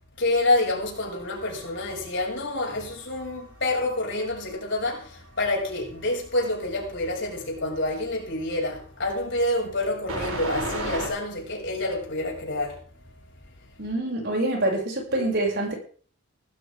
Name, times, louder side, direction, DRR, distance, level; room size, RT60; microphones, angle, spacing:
voice 1, 0.2-12.8, left 2 dB, 55° left, 7.1 m, -27 dB
sound 1, 1.0-3.7 4.0-5.1 10.1-11.1, right 2 dB, 75° right, 7.5 m, -33 dB
voice 2, 13.8-15.7, right 1 dB, 50° right, 7.4 m, -26 dB
19.5 x 14.5 x 3.8 m
head